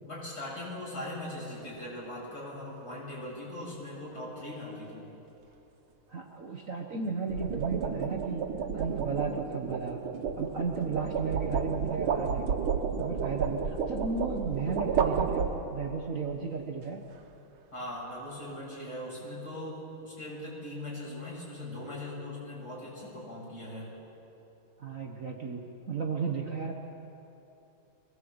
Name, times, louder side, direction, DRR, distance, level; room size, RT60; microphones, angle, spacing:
voice 1, 0.0-5.1 17.7-23.9, left 1 dB, 45° left, -5 dB, 8.2 m, -40 dB
sound 1, 1.6-1.9 7.1-16.0, right 6 dB, 80° right, 2.1 m, -32 dB
voice 2, 6.1-8.5 8.7-10.0 10.4-12.6 13.0-17.0 24.8-26.7, right 5 dB, 45° right, 1 dB, 1.5 m, -34 dB
24.0 x 19.5 x 8.0 m, 3.0 s
omnidirectional pair, 2.3 m